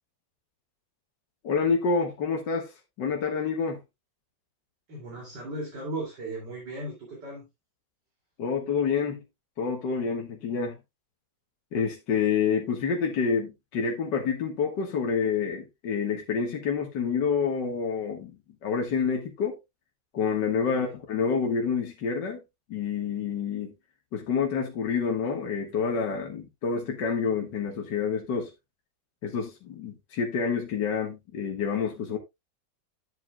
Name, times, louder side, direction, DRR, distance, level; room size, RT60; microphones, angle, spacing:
voice 1, 1.4-2.7 3.0-3.8 8.4-9.2 9.6-10.8 11.7-19.6 20.1-22.4 22.7-23.7 24.1-28.5 29.2-32.2, left 6 dB, 70° left, 2.1 m, -28 dB
voice 2, 4.9-7.5 20.7-21.0, right 2 dB, 70° right, 3.5 m, -37 dB
12.0 x 7.7 x 2.2 m
omnidirectional pair, 2.0 m